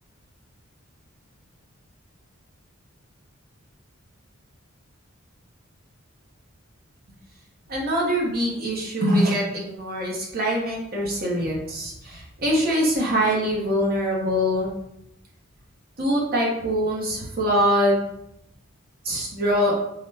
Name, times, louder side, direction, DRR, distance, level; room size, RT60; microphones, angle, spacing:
voice 1, 7.7-14.7 16.0-18.1 19.0-19.7, equal, 45° right, -3 dB, 0.8 m, -23 dB
3.9 x 2.1 x 3.2 m, 0.79 s
head